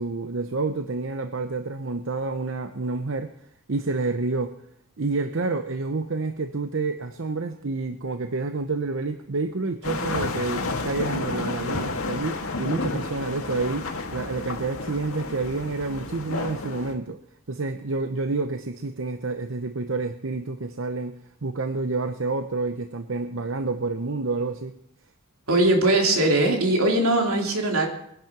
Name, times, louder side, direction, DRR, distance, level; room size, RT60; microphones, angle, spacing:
voice 1, 0.0-3.3 3.7-4.6 5.0-17.2 17.5-24.8, right 3 dB, 65° right, 8 dB, 0.8 m, -29 dB
sound 1, 9.8-16.9, left 3 dB, 90° left, 2.0 m, -31 dB
voice 2, 25.5-27.9, right 1 dB, 85° right, 2 dB, 3.2 m, -20 dB
21.0 x 10.5 x 6.0 m, 0.75 s
head